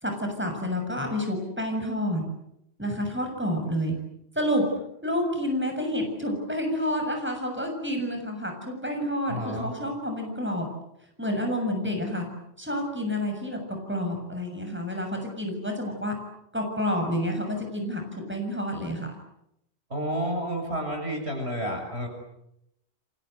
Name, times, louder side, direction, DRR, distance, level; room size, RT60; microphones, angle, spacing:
voice 1, 0.0-2.2 2.8-4.0 4.4-4.7 5.0-10.7 11.2-12.3 12.6-16.2 16.5-18.0 18.3-19.1, equal, 10° right, 3 dB, 7.1 m, -29 dB
voice 2, 9.3-9.7 19.9-22.1, equal, 85° right, 3 dB, 7.6 m, -30 dB
29.5 x 24.0 x 8.1 m, 0.80 s
omnidirectional pair, 1.1 m